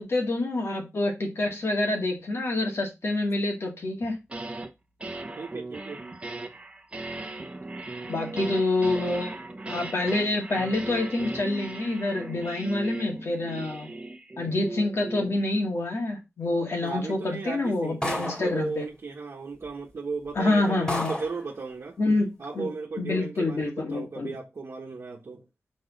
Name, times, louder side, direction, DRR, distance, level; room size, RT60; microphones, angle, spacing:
voice 1, 0.0-4.2 8.1-13.9 14.4-18.8 20.4-21.1 22.0-22.3 22.5-22.7 23.0-24.3, left 2 dB, 65° left, 2.1 m, -27 dB
sound 1, 4.0-4.7 5.0-15.4, right 2 dB, 25° right, 1.0 m, -37 dB
voice 2, 5.4-6.0 16.8-22.0 22.4-25.4, right 4 dB, 65° right, 1.2 m, -36 dB
sound 2, 18.0-18.6 19.6-19.7 20.3-20.4 20.9-21.4, left 1 dB, 20° left, 2.5 m, -31 dB
6.2 x 4.2 x 4.0 m
wide cardioid pair, 80°, 5 cm